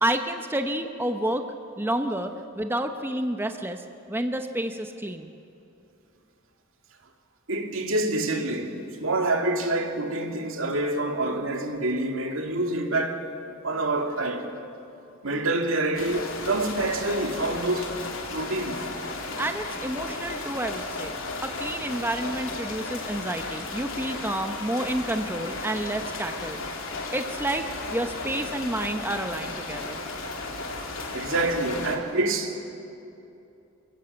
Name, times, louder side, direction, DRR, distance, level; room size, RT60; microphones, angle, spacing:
voice 1, 0.0-1.5 1.8-5.3 19.4-21.1 21.4-26.6 27.1-30.0, right 1 dB, 10° right, 0.9 m, -29 dB
voice 2, 7.5-13.2 13.6-14.5 15.2-18.0 18.3-18.9 31.1-32.6, right 2 dB, 80° right, 2.3 m, -27 dB
sound 1, 15.9-32.0, left 3 dB, 80° left, 2.8 m, -34 dB
27.5 x 17.0 x 7.9 m
head